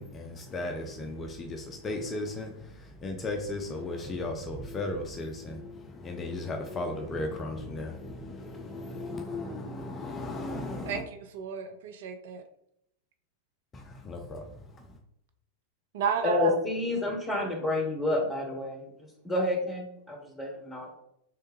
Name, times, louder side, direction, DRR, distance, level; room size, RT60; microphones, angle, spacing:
voice 1, 0.0-11.0 13.7-15.0, left 2 dB, 20° left, 3 dB, 0.5 m, -36 dB
voice 2, 11.3-12.4 15.9-16.5, right 7 dB, 55° right, 7 dB, 0.4 m, -31 dB
voice 3, 16.2-20.9, left 2 dB, 5° left, 0 dB, 1.2 m, -29 dB
3.6 x 3.2 x 3.1 m, 0.77 s
figure-of-eight pair, 90°, 0 cm